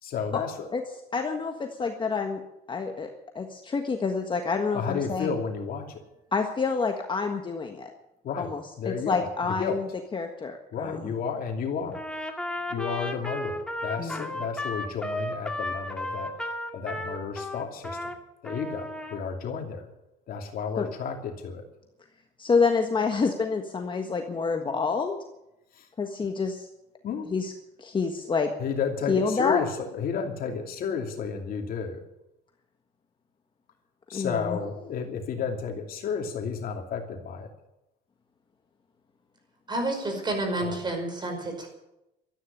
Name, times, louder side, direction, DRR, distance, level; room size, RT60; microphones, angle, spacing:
voice 1, 0.0-0.7 4.7-6.0 8.2-8.5 8.8-9.8 10.7-12.0 12.7-16.3 16.7-18.0 18.4-19.9 20.3-21.6 25.7-25.9 27.0-27.3 28.2-32.0 34.1-37.5 40.6-40.8, left 6 dB, 60° left, 3 dB, 2.8 m, -32 dB
voice 2, 1.1-2.4 2.7-3.1 3.3-5.3 6.3-7.9 8.4-8.6 8.8-9.9 10.1-11.1 14.0-14.3 20.8-20.9 22.4-25.2 26.0-26.7 27.3-27.5 27.8-28.5 29.1-29.6 34.1-34.6, left 4 dB, 30° left, 4 dB, 1.5 m, -27 dB
Trumpet, 11.9-18.2 18.4-19.2, left 1 dB, 5° left, 2.2 m, -34 dB
voice 3, 39.7-41.7, right 2 dB, 25° right, 4 dB, 5.3 m, -29 dB
13.5 x 9.8 x 10.0 m, 0.90 s
cardioid pair, 110°, 17 cm